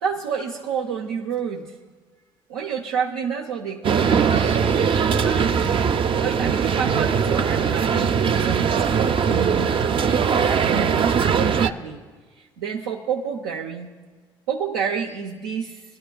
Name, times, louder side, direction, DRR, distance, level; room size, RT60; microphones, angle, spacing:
voice 1, 0.0-1.7 2.5-12.0 12.4-13.9 14.5-15.8, right 6 dB, 85° right, -2 dB, 0.7 m, -29 dB
sound 1, 3.8-11.7, right 6 dB, 45° right, 0.5 m, -20 dB
19.5 x 11.5 x 2.3 m, 1.4 s
hypercardioid pair, 60°, 12 cm